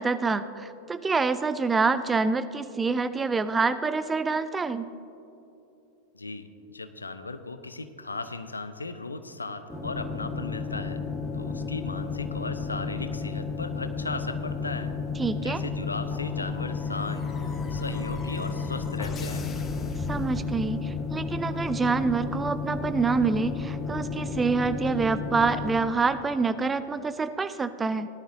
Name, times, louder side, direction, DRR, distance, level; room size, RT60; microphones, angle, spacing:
voice 1, 0.0-4.9 15.2-15.6 20.1-28.1, right 4 dB, 15° right, 12 dB, 0.4 m, -26 dB
voice 2, 6.1-11.0 11.3-14.9 15.4-19.4, left 3 dB, 80° left, 10 dB, 0.6 m, -37 dB
sound 1, 9.7-25.7, left 4 dB, 5° left, 1.6 m, -32 dB
sound 2, 16.1-21.1, left 3 dB, 25° left, 1.0 m, -38 dB
17.5 x 11.5 x 2.7 m, 2.8 s
figure-of-eight pair, 90°, 0 cm